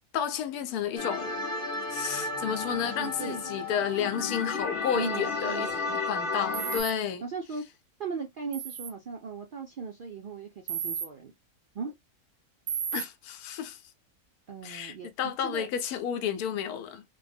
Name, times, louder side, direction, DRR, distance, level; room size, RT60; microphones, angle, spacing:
voice 1, 0.1-1.3 1.9-7.2 12.9-13.8 14.6-17.0, left 8 dB, 80° left, 1.1 m, -31 dB
sound 1, 1.0-6.8, left 3 dB, 45° left, 0.8 m, -33 dB
voice 2, 2.8-3.4 4.9-6.0 7.2-7.6 8.0-11.3 11.7-12.0 14.5-15.7, right 5 dB, 90° right, 0.4 m, -38 dB
sound 2, 6.5-6.9 8.5-8.9 10.7-11.1 12.7-13.0, right 7 dB, 65° right, 0.7 m, -33 dB
3.4 x 2.1 x 3.4 m
omnidirectional pair, 1.6 m